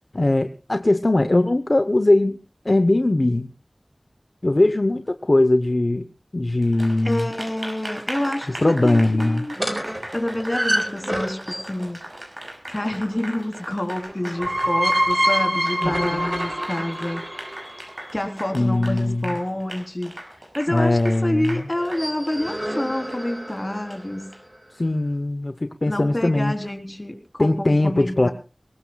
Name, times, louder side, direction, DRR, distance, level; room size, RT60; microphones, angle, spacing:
voice 1, 0.1-2.4 2.6-3.5 4.4-6.1 6.3-7.3 8.6-9.5 18.5-19.3 20.7-21.6 24.7-26.5 27.4-28.3, left 2 dB, 60° left, 9 dB, 0.9 m, -20 dB
Applause, 6.6-24.4, right 1 dB, 45° right, 6.0 m, -38 dB
voice 2, 7.0-9.6 10.1-12.0 12.7-17.2 18.1-24.3 25.9-28.3, left 1 dB, 35° left, 5 dB, 3.7 m, -28 dB
sound 1, 9.6-11.9 14.1-18.1 21.7-24.0, equal, 20° right, 4.3 m, -26 dB
23.0 x 19.0 x 2.3 m, 0.33 s
wide cardioid pair, 40°, 0 cm